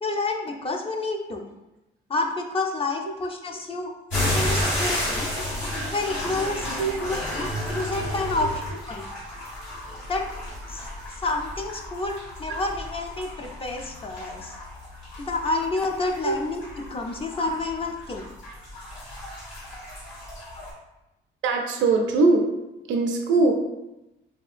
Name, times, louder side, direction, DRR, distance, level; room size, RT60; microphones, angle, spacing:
voice 1, 0.0-1.5 2.1-3.9 4.3-5.3 5.9-6.7 7.0-8.6 8.9-9.1 10.1-10.2 10.7-10.9 11.2-14.6 15.2-18.3, left 3 dB, 30° left, 2 dB, 0.4 m, -29 dB
sound 1, 4.1-20.7, left 1 dB, 70° left, 1.5 m, -32 dB
voice 2, 21.4-22.5 22.9-23.5, right 3 dB, 75° right, 2 dB, 0.5 m, -21 dB
3.0 x 2.7 x 2.4 m, 0.96 s
cardioid pair, 90°, 20 cm